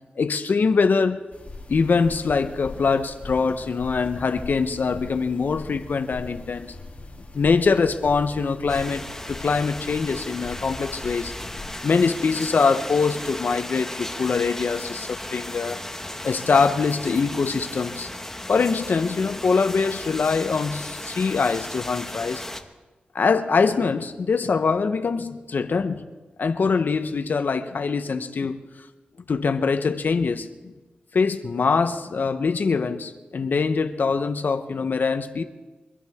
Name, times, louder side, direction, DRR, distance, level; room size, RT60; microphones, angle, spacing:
voice 1, 0.2-1.2 1.7-6.7 7.3-11.3 11.8-15.8 16.2-18.1 18.5-22.4 23.1-26.1 26.4-28.6 29.3-30.7 31.1-35.4, left 5 dB, 65° left, 8 dB, 0.9 m, -23 dB
sound 1, 1.3-11.7, left 2 dB, 45° left, 2.8 m, -41 dB
sound 2, 8.7-22.6, left 1 dB, 10° left, 1.7 m, -36 dB
24.5 x 11.0 x 3.6 m, 1.2 s
cardioid pair, 45°, 3 cm